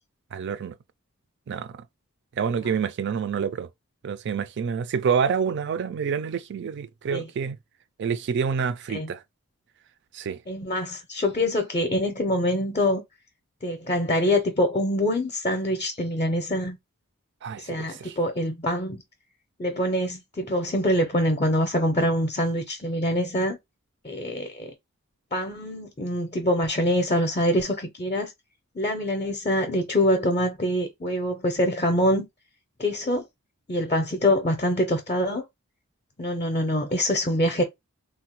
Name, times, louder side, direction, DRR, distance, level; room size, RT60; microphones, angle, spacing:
voice 1, 0.3-0.7 1.5-1.8 2.3-3.7 4.0-7.6 8.0-9.2 10.1-10.4 17.4-18.2, right 6 dB, 55° right, 0.3 m, -27 dB
voice 2, 10.5-13.0 13.6-16.8 17.6-19.0 19.6-23.6 24.0-24.7 25.3-28.3 28.7-32.3 32.8-33.2 33.7-35.4 36.2-37.6, left 1 dB, 30° left, 0.5 m, -25 dB
3.3 x 2.1 x 2.9 m
head